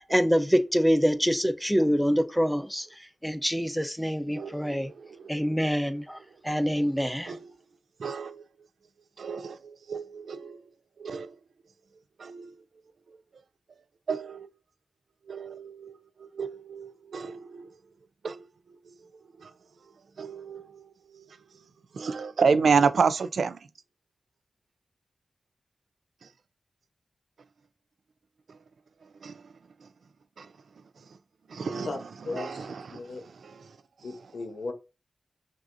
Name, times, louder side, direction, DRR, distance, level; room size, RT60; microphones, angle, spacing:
voice 1, 0.1-2.9 3.2-4.9 5.3-6.2 6.4-7.3, equal, ahead, 0.7 m, -25 dB
voice 2, 4.4-5.6 7.3-7.5 8.0-8.4 9.2-10.6 11.0-11.3 12.2-12.5 14.1-14.5 15.3-15.9 16.2-17.7 18.2-18.4 19.4-19.5 20.2-20.8 21.1-21.2 21.9-23.6 29.2-29.3 30.4-30.5 31.5-31.9 32.4-32.8, right 5 dB, 85° right, 0.3 m, -29 dB
voice 3, 32.3-33.2 34.0-34.7, left 3 dB, 85° left, 0.8 m, -36 dB
5.9 x 2.6 x 2.5 m
cardioid pair, 45°, 0 cm